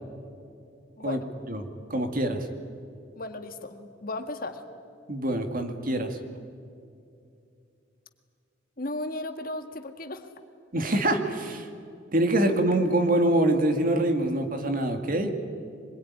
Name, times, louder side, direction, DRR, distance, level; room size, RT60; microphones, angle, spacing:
voice 1, 1.0-1.3 3.2-4.6 8.8-10.3, left 2 dB, 50° left, 7 dB, 1.9 m, -35 dB
voice 2, 1.9-2.5 5.1-6.2 10.7-11.7 12.1-15.3, right 1 dB, 50° right, 6 dB, 2.5 m, -25 dB
25.5 x 21.5 x 9.9 m, 2.5 s
head